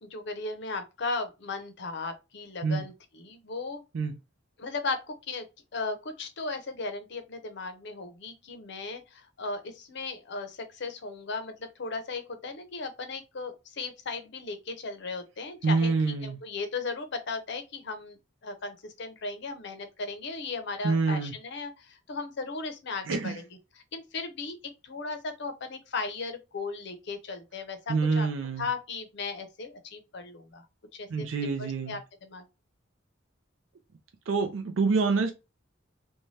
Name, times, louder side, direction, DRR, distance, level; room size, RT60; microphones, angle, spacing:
voice 1, 0.0-3.8 4.6-5.4 5.7-15.9 16.2-18.2 18.4-23.3 23.9-24.6 24.8-28.3 28.6-30.6 31.0-31.3 31.6-32.4, left 3 dB, 65° left, 0.6 m, -36 dB
voice 2, 15.6-16.4 20.8-21.3 23.1-23.4 27.9-28.7 31.1-32.0 34.3-35.3, right 4 dB, 80° right, 0.4 m, -26 dB
2.7 x 2.2 x 3.1 m
head